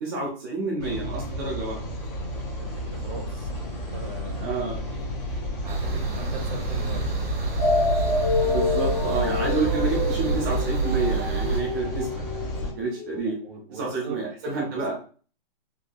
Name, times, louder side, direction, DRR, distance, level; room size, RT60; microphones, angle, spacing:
voice 1, 0.0-1.8 4.4-4.8 8.4-12.2 12.8-13.4 13.7-14.9, right 3 dB, 25° right, -5 dB, 0.7 m, -29 dB
sound 1, 0.8-12.7, equal, 20° left, 0.7 m, -33 dB
voice 2, 2.6-5.1 5.6-7.2 13.2-14.3 14.6-14.9, right 3 dB, 55° right, 1 dB, 1.0 m, -41 dB
sound 2, 5.7-11.6, right 3 dB, 80° right, 0.9 m, -28 dB
sound 3, 7.6-13.2, left 3 dB, 35° left, 1.4 m, -28 dB
3.6 x 2.2 x 2.2 m, 0.39 s
hypercardioid pair, 160°, 29 cm